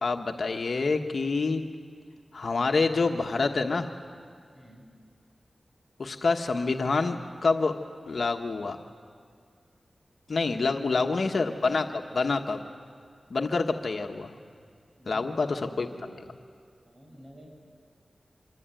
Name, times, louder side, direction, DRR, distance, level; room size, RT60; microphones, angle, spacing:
voice 1, 0.0-1.6 2.3-3.9 6.0-7.8 8.1-8.8 10.3-12.6 13.3-14.3 15.1-15.9, left 3 dB, 65° left, 4 dB, 1.4 m, -27 dB
voice 2, 4.5-4.9 10.6-11.2 15.0-16.2 16.8-17.5, equal, 40° right, 1 dB, 6.7 m, -50 dB
26.5 x 23.0 x 9.2 m, 2.1 s
wide cardioid pair, 70°, 0 cm